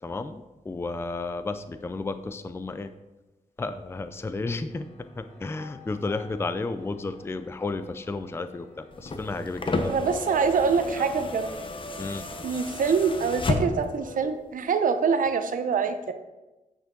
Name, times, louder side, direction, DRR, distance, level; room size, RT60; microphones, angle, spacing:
voice 1, 0.0-2.9 3.6-10.0 11.0-11.1 12.0-12.2, left 3 dB, 20° left, 11 dB, 0.4 m, -33 dB
sound 1, 4.7-14.2, left 2 dB, 65° left, 1.5 m, -50 dB
sound 2, 8.9-14.0 15.3-15.4, left 2 dB, 40° left, 0.8 m, -32 dB
voice 2, 9.8-11.5 12.4-16.1, right 6 dB, 80° right, 8 dB, 0.6 m, -25 dB
8.9 x 5.1 x 3.8 m, 1.1 s
cardioid pair, 85°, 14 cm